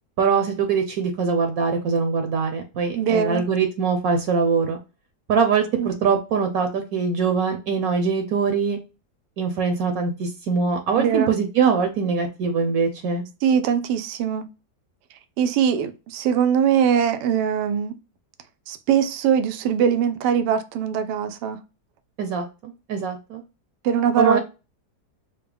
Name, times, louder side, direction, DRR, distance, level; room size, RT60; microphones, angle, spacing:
voice 1, 0.2-4.8 5.3-8.8 9.4-13.2 22.2-23.4 24.2-24.4, right 5 dB, 65° right, 1.1 m, -23 dB
voice 2, 2.9-3.4 5.8-5.9 10.9-11.3 13.4-14.5 15.4-18.0 18.7-21.6 23.8-24.4, right 8 dB, 85° right, 1.2 m, -21 dB
4.4 x 2.1 x 3.3 m
omnidirectional pair, 1.7 m